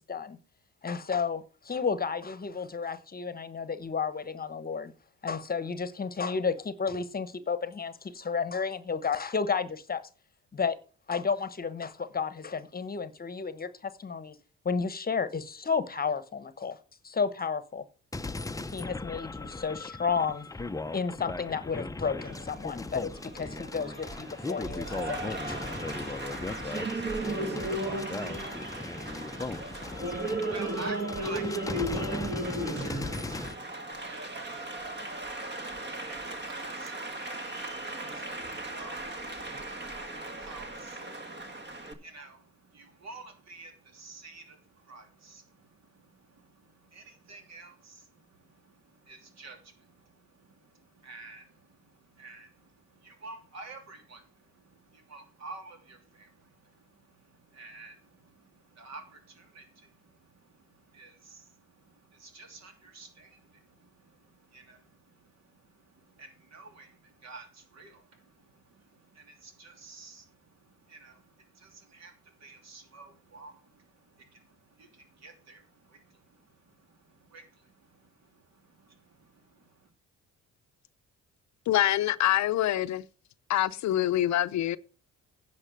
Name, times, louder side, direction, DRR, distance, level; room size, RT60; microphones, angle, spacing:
voice 1, 0.8-4.9 5.2-10.1 10.5-10.8 11.1-14.4 14.6-16.8 17.0-17.8 18.7-20.5 20.9-25.5, left 5 dB, 30° left, 1.0 m, -32 dB
sound 1, 18.1-33.6, left 3 dB, 10° left, 0.6 m, -38 dB
Applause, 22.2-41.9, right 2 dB, 35° right, 1.7 m, -36 dB
voice 2, 28.5-79.9, right 3 dB, 60° right, 2.9 m, -51 dB
voice 3, 81.7-83.1 83.5-84.8, left 13 dB, 65° left, 0.6 m, -25 dB
9.9 x 5.7 x 6.7 m
cardioid pair, 90°, 30 cm